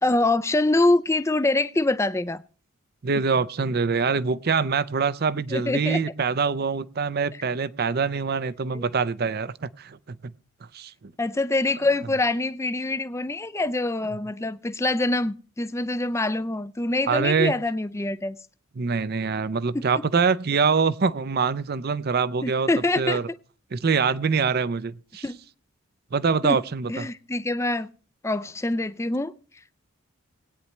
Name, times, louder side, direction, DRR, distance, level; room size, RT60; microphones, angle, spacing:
voice 1, 0.0-2.4 5.5-6.0 8.7-8.8 11.2-18.4 22.4-23.2 25.2-25.4 26.4-26.6 26.9-27.9 28.2-29.3, left 2 dB, 15° left, 0.4 m, -25 dB
voice 2, 3.0-10.3 10.7-11.1 17.1-17.5 18.8-22.7 23.0-23.3 23.7-25.2 26.1-27.1, right 5 dB, 45° right, 0.5 m, -24 dB
19.5 x 9.3 x 3.2 m
head